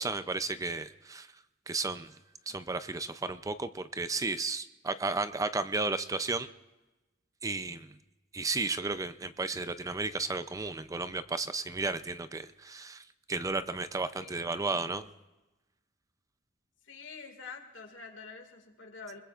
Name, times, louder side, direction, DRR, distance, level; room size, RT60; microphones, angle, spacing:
voice 1, 0.0-1.3 1.7-2.1 2.5-6.5 7.4-8.0 8.3-15.0, right 3 dB, 20° right, 12 dB, 0.5 m, -33 dB
voice 2, 14.2-15.1 16.8-19.2, left 4 dB, 75° left, 4 dB, 2.1 m, -47 dB
25.0 x 21.5 x 2.5 m, 1.1 s
head